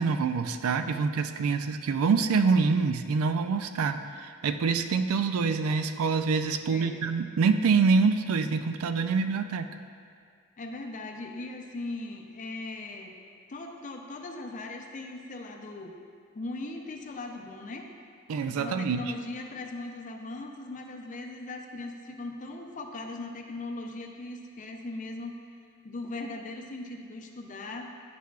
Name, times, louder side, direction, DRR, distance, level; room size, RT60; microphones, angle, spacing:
voice 1, 0.0-9.7 18.3-19.0, right 5 dB, 85° right, 9 dB, 0.4 m, -26 dB
voice 2, 6.7-7.1 10.6-13.2 13.5-16.0 16.3-17.9 18.5-25.3 25.8-27.9, left 2 dB, 40° left, 3 dB, 0.5 m, -39 dB
10.0 x 4.7 x 2.3 m, 2.2 s
head